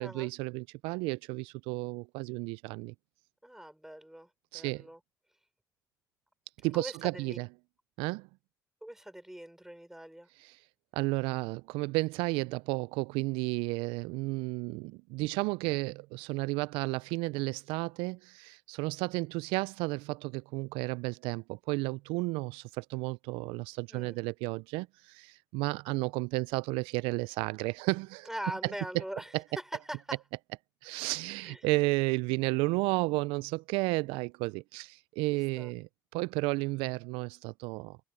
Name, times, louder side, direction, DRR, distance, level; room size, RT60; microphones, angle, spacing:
voice 1, 0.0-2.9 4.5-4.9 6.6-7.5 8.0-8.3 10.4-10.6 10.9-28.3 28.6-29.0 29.3-29.4 30.8-38.0, right 24 dB, 80° right, 0.4 m, -32 dB
voice 2, 3.4-5.0 6.7-7.4 8.8-10.3 23.9-24.2 28.3-29.3 29.9-30.2 31.4-31.6 35.6-35.7, right 1 dB, 5° right, 4.8 m, -42 dB
hypercardioid pair, 60°, 9 cm